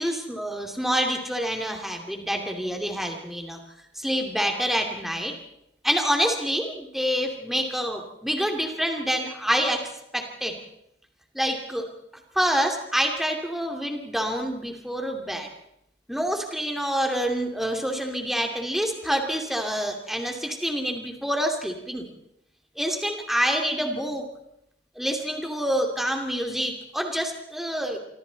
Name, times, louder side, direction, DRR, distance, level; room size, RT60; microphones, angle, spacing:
voice 1, 0.0-3.6 4.0-5.3 5.8-10.6 11.3-11.9 12.3-15.5 16.1-22.1 22.8-24.3 24.9-28.0, equal, ahead, 3 dB, 2.6 m, -27 dB
26.5 x 25.5 x 4.1 m, 0.79 s
head